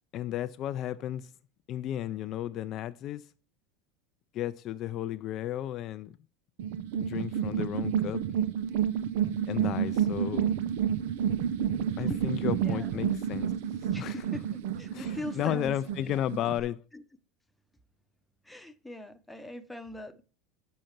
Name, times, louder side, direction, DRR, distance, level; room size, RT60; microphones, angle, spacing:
voice 1, 0.1-1.3 1.7-3.3 4.3-6.1 7.0-8.2 9.5-10.5 12.0-13.5 14.0-14.3 14.9-16.8, left 12 dB, 50° left, 0.4 m, -33 dB
sound 1, 6.6-16.6, right 9 dB, 75° right, 0.5 m, -30 dB
voice 2, 12.1-12.4 12.6-12.9 13.9-15.8 16.1-16.2 16.9-17.0 18.5-20.2, left 1 dB, 5° left, 0.8 m, -41 dB
7.5 x 6.5 x 4.4 m
supercardioid pair, 105°, 0 cm